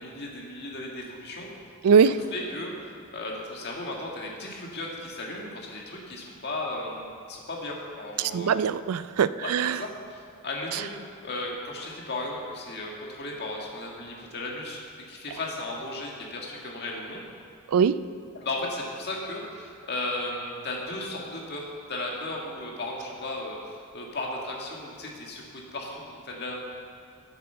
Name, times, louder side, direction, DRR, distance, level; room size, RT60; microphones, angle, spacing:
voice 1, 0.0-1.5 2.0-2.7 3.1-8.6 9.4-10.9 11.2-14.8 15.1-17.2 18.3-26.6, left 2 dB, 50° left, -2 dB, 1.8 m, -35 dB
voice 2, 1.8-2.2 8.2-9.8 10.7-10.8 17.7-18.0, right 6 dB, 85° right, 15 dB, 0.4 m, -22 dB
9.4 x 7.9 x 6.8 m, 2.5 s
head